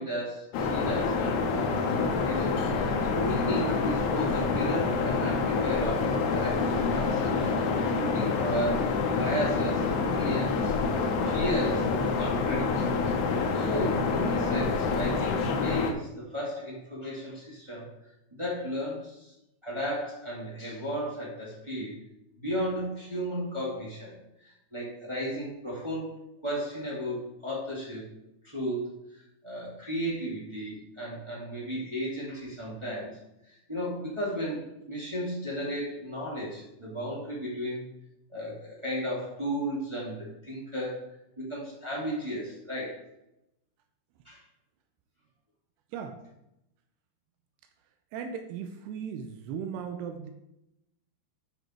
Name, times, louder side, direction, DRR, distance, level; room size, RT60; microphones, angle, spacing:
voice 1, 0.0-10.7 11.3-13.0 13.5-17.9 18.3-19.3 19.6-22.0 22.3-26.1 26.4-28.1 28.4-28.9 29.4-33.2 33.4-37.9 38.3-41.1 41.4-43.0 44.2-44.4, equal, 10° right, -6 dB, 1.5 m, -34 dB
sound 1, 0.5-15.9, left 4 dB, 90° left, 3.1 m, -27 dB
voice 2, 48.1-50.3, right 7 dB, 90° right, 5 dB, 2.8 m, -37 dB
10.0 x 5.4 x 4.6 m, 0.86 s
omnidirectional pair, 4.6 m